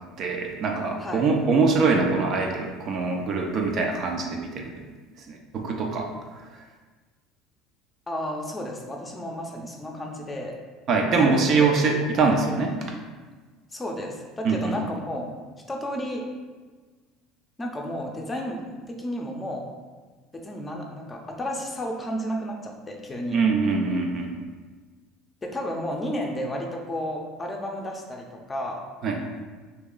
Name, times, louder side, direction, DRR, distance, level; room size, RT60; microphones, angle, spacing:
voice 1, 0.2-4.6 5.3-6.1 10.9-12.8 14.4-14.8 23.3-24.3 29.0-29.2, right 4 dB, 45° right, 1 dB, 0.4 m, -23 dB
voice 2, 8.1-10.6 11.2-11.4 13.7-15.3 15.7-16.2 17.6-19.7 20.3-23.4 25.4-28.8, equal, 20° left, 1 dB, 0.6 m, -32 dB
2.9 x 2.7 x 3.8 m, 1.4 s
figure-of-eight pair, 65°, 0 cm